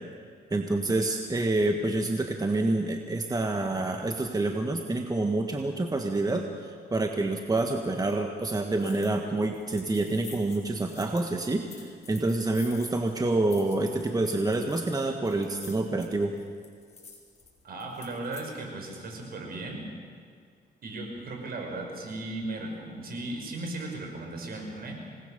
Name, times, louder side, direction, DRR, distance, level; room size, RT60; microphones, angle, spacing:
voice 1, 0.5-16.3, right 2 dB, 20° right, 4 dB, 1.6 m, -27 dB
sound 1, 8.8-9.2 9.4-18.5, left 5 dB, 40° left, 5.5 m, -50 dB
voice 2, 17.6-19.8 20.8-25.0, right 2 dB, 60° right, 1 dB, 6.1 m, -36 dB
27.0 x 20.0 x 6.9 m, 2.1 s
cardioid pair, 95°, 17 cm